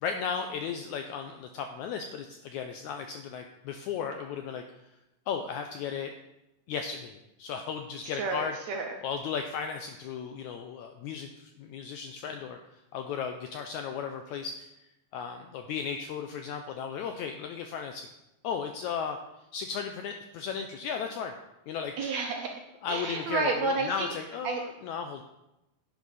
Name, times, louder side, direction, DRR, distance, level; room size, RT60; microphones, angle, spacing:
voice 1, 0.0-4.6 5.3-6.1 6.7-8.5 9.0-12.6 12.9-14.7 15.1-18.1 18.4-19.2 19.5-21.3 21.7-21.9 22.8-25.2, left 6 dB, 85° left, 5 dB, 1.7 m, -35 dB
voice 2, 8.1-9.0 22.0-22.6 22.9-24.1 24.4-24.6, right 3 dB, 75° right, 2 dB, 1.7 m, -30 dB
11.0 x 8.3 x 4.1 m, 0.92 s
omnidirectional pair, 4.0 m